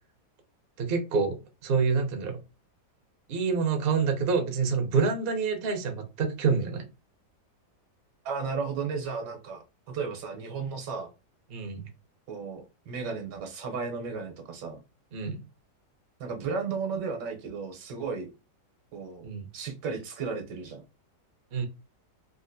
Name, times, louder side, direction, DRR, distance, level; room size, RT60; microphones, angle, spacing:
voice 1, 0.8-1.4 1.6-2.4 3.3-6.8 11.5-11.9 15.1-15.4 19.2-19.4 21.5-21.7, right 5 dB, 50° right, 0.7 m, -27 dB
voice 2, 8.2-11.1 12.3-14.8 16.2-18.3 18.9-19.2 19.5-20.8, right 5 dB, 75° right, 1.4 m, -34 dB
3.7 x 2.5 x 2.6 m
omnidirectional pair, 1.9 m